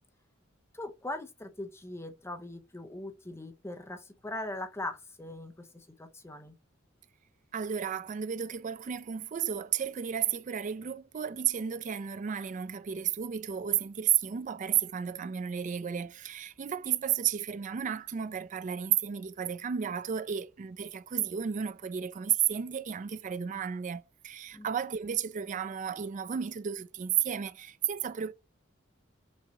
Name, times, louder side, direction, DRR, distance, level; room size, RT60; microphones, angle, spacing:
voice 1, 0.7-6.6 24.5-24.7, left 2 dB, 15° left, 0.7 m, -40 dB
voice 2, 7.5-28.3, right 9 dB, 40° right, 0.4 m, -32 dB
6.2 x 2.8 x 2.9 m
head